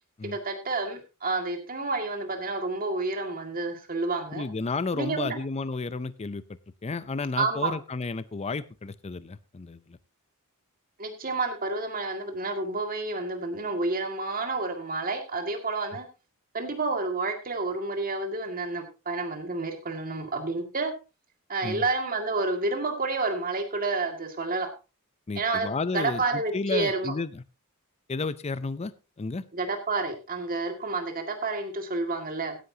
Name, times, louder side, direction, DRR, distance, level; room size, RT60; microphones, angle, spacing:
voice 1, 0.2-4.4 5.0-5.4 7.4-7.7 11.0-16.1 16.5-20.9 21.5-24.7 25.4-25.7 25.9-27.1 29.5-32.6, right 3 dB, 40° right, 5 dB, 2.1 m, -29 dB
voice 2, 4.3-6.4 6.8-10.0 21.6-21.8 25.3-27.4 28.1-28.9 29.2-29.4, left 4 dB, 30° left, 16 dB, 0.5 m, -32 dB
16.0 x 10.5 x 2.8 m, 0.30 s
head